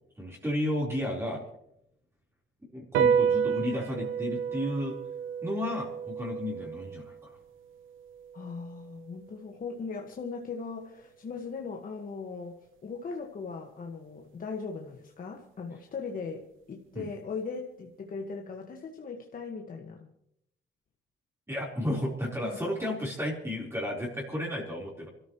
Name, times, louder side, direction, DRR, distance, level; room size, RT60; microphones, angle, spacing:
voice 1, 0.2-1.4 2.7-5.0 5.4-7.3 16.9-17.1 21.5-25.1, left 1 dB, 10° right, -4 dB, 4.2 m, -33 dB
sound 1, 2.9-9.7, right 7 dB, 90° right, 0.8 m, -31 dB
voice 2, 8.3-12.6 12.8-20.1 22.4-22.6, left 4 dB, 45° left, 1 dB, 1.7 m, -39 dB
27.0 x 13.5 x 3.2 m, 0.74 s
cardioid pair, 90°, 20 cm